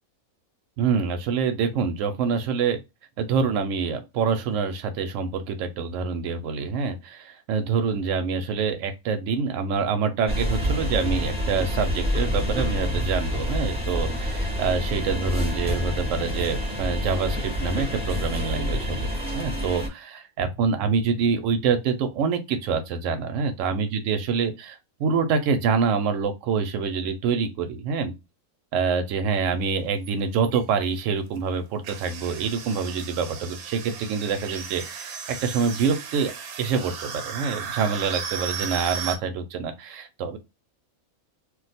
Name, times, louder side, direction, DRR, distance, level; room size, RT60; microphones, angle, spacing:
voice 1, 0.8-2.8 3.2-28.1 28.7-36.3 36.6-40.4, right 5 dB, 65° right, 0.9 m, -26 dB
sound 1, 10.3-19.9, equal, 5° right, 0.5 m, -27 dB
sound 2, 30.0-30.1 30.4-30.6 31.8-39.2, right 7 dB, 90° right, 1.1 m, -35 dB
2.5 x 2.2 x 4.0 m
omnidirectional pair, 1.5 m